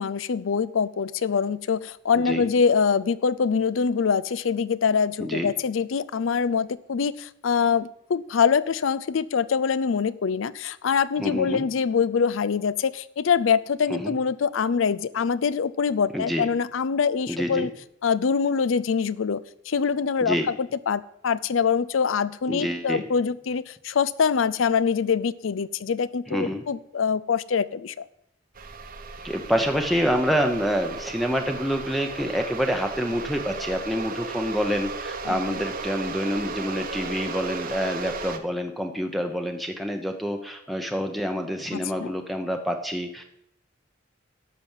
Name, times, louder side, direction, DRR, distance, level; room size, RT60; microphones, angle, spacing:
voice 1, 0.0-17.7 18.0-28.1 35.3-35.4 41.7-42.1, left 6 dB, 75° left, 18 dB, 0.5 m, -24 dB
voice 2, 11.2-11.6 13.9-14.2 16.1-16.5 17.3-17.7 20.2-20.5 22.5-23.0 26.3-26.6 29.2-43.2, equal, ahead, 5 dB, 0.7 m, -27 dB
sound 1, 28.5-38.4, right 4 dB, 45° right, 0.9 m, -35 dB
12.0 x 5.9 x 7.3 m, 0.77 s
head